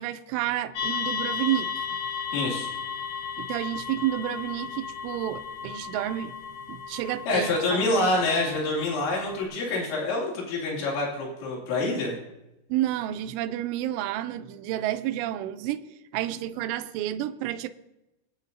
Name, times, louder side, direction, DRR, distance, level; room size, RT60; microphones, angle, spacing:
voice 1, 0.0-1.8 3.4-6.3 6.7-8.1 12.7-17.7, right 13 dB, 80° right, 2.6 m, -30 dB
sound 1, 0.8-9.4, left 6 dB, 70° left, 3.0 m, -35 dB
voice 2, 2.3-2.7 7.3-12.2, left 2 dB, 85° left, 4.8 m, -26 dB
23.5 x 8.9 x 2.6 m
omnidirectional pair, 5.2 m